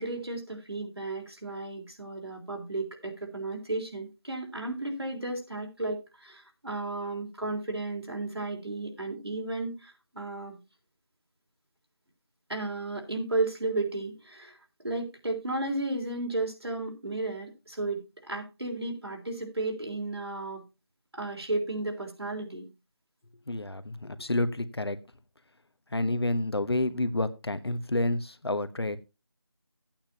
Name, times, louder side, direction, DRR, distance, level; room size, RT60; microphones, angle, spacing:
voice 1, 0.0-10.6 12.5-20.6 21.1-22.7, right 2 dB, 70° right, 2 dB, 3.5 m, -34 dB
voice 2, 23.5-25.0 25.9-29.0, left 2 dB, 70° left, 12 dB, 1.2 m, -29 dB
14.5 x 8.9 x 2.8 m, 0.26 s
figure-of-eight pair, 180°, 14 cm